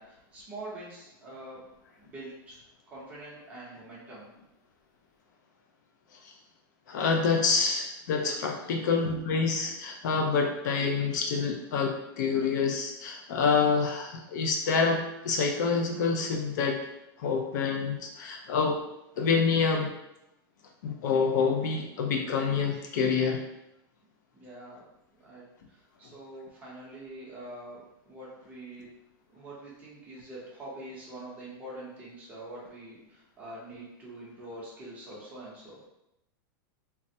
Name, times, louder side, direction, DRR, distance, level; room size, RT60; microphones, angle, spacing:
voice 1, 0.0-1.6 2.0-2.6 2.9-4.3 8.2-8.4 24.3-24.8 25.2-28.9 29.3-35.9, right 1 dB, 10° right, -7 dB, 0.7 m, -45 dB
voice 2, 6.9-16.8 17.2-18.8 19.2-19.9 20.8-23.4, left 5 dB, 50° left, 3 dB, 0.4 m, -27 dB
3.2 x 2.1 x 2.7 m, 0.86 s
supercardioid pair, 175°, 12 cm